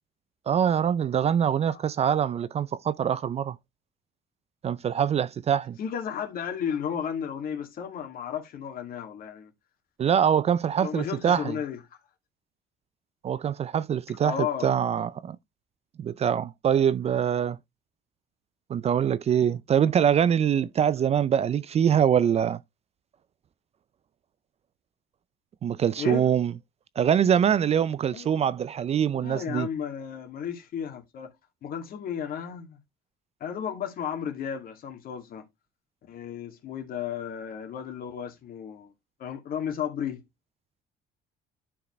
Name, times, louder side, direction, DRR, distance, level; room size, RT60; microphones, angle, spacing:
voice 1, 0.5-3.6 4.6-5.8 10.0-11.5 13.2-15.4 16.0-17.6 18.7-22.6 25.6-26.5 27.0-29.7, right 8 dB, 40° right, 0.4 m, -24 dB
voice 2, 5.8-9.5 10.8-11.8 14.2-14.7 26.0-26.3 28.1-28.5 29.1-31.3 31.6-32.8 33.4-35.5 36.1-38.9 39.2-40.2, left 8 dB, 60° left, 2.2 m, -33 dB
11.0 x 4.7 x 3.1 m
cardioid pair, 110°, 17 cm